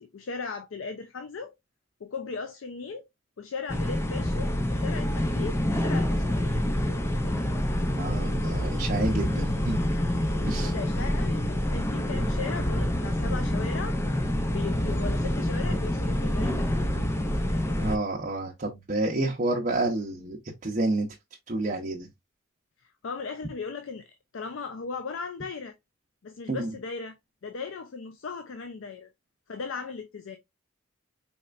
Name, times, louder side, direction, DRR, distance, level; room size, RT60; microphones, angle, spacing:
voice 1, 0.0-1.5 2.0-3.1 3.4-6.5 10.6-14.0 14.5-17.0 22.8-24.1 24.3-25.8 26.2-29.1 29.5-30.4, left 5 dB, 75° left, 0.5 m, -37 dB
sound 1, 3.7-18.0, left 1 dB, 15° left, 0.4 m, -27 dB
voice 2, 7.9-9.8 10.5-10.7 17.8-21.1 21.5-22.1 26.5-26.7, right 2 dB, 40° right, 0.7 m, -29 dB
4.3 x 3.3 x 2.4 m
head